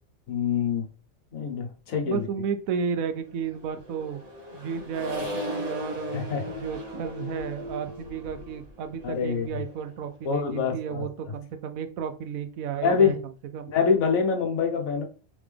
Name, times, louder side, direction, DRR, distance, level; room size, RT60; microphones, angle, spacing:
voice 1, 0.3-0.9 1.3-2.3 6.1-6.4 9.0-9.6 10.2-11.1 12.8-13.2 13.7-15.1, left 6 dB, 85° left, 1.4 m, -25 dB
voice 2, 2.0-4.3 4.5-13.1 13.5-13.7, right 7 dB, 85° right, 1.1 m, -33 dB
Accelerating revving vroom, 3.5-10.2, left 1 dB, 30° right, 1.4 m, -37 dB
3.8 x 3.5 x 3.4 m
omnidirectional pair, 1.4 m